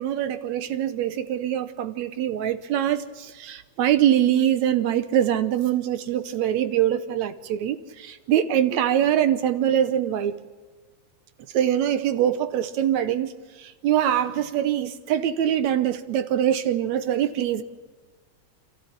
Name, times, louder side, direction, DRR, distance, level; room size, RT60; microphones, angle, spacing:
voice 1, 0.0-10.3 11.5-13.3 13.8-17.6, right 10 dB, 75° right, 12 dB, 2.1 m, -23 dB
28.0 x 13.5 x 8.7 m, 1.3 s
omnidirectional pair, 3.5 m